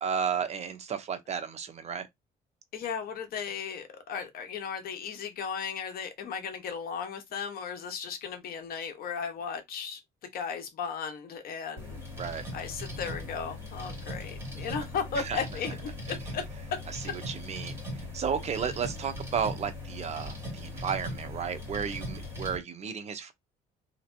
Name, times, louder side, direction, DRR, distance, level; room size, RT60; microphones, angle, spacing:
voice 1, 0.0-2.1 12.2-12.5 15.2-15.4 17.0-23.3, right 7 dB, 40° right, 0.7 m, -33 dB
voice 2, 2.7-10.0 10.3-12.0 12.5-16.4, left 6 dB, 60° left, 1.0 m, -36 dB
sound 1, 11.8-22.6, left 1 dB, 15° right, 2.0 m, -39 dB
3.3 x 2.9 x 2.6 m
cardioid pair, 110°, 17 cm